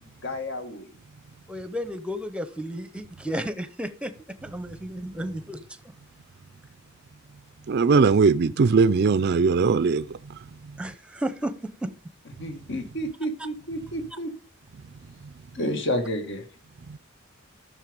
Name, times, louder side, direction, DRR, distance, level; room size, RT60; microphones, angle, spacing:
voice 1, 0.2-0.9 12.4-14.3 15.5-16.4, equal, 60° left, 1.8 m, -30 dB
voice 2, 1.5-4.1 4.4-5.6 10.8-11.5 11.8-11.9, equal, 5° right, 0.9 m, -32 dB
voice 3, 7.7-10.1, right 4 dB, 50° right, 0.4 m, -19 dB
12.0 x 6.6 x 5.2 m
head